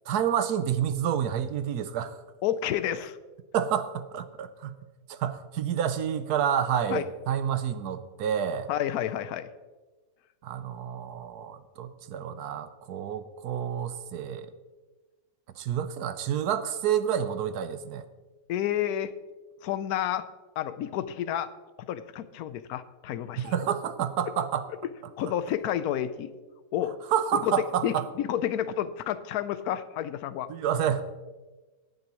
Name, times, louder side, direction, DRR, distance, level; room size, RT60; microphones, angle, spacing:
voice 1, 0.1-2.2 3.5-4.8 5.1-8.7 10.4-14.5 15.6-18.0 23.4-24.7 27.1-28.1 30.5-31.0, right 9 dB, 80° right, 12 dB, 1.3 m, -29 dB
voice 2, 2.4-3.2 6.9-7.1 8.7-9.5 18.5-19.1 19.6-20.3 20.6-21.5 21.9-23.7 25.2-26.3 26.7-26.9 27.4-27.5 27.8-30.5, left 11 dB, 75° left, 13 dB, 1.1 m, -30 dB
17.5 x 9.6 x 3.0 m, 1.2 s
omnidirectional pair, 1.7 m